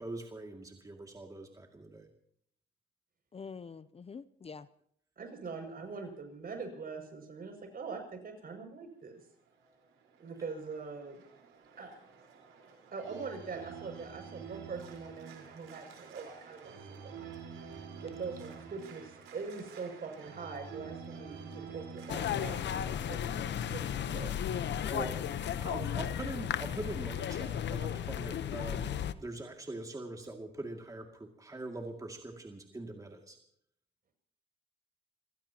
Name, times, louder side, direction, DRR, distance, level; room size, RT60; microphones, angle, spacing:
voice 1, 0.0-2.1 10.4-10.5 24.9-25.2 25.6-33.4, right 2 dB, 15° right, 2.3 m, -43 dB
voice 2, 3.3-4.7 24.8-25.1, left 5 dB, 30° left, 0.6 m, -45 dB
voice 3, 5.2-9.2 10.2-11.2 11.8-11.9 12.9-17.1 17.8-24.3, right 4 dB, 50° right, 6.4 m, -43 dB
Organ, 9.5-22.6, right 6 dB, 90° right, 4.4 m, -48 dB
sound 1, 22.1-29.1, left 9 dB, 65° left, 1.0 m, -34 dB
29.5 x 16.5 x 2.9 m
cardioid pair, 90°, 20 cm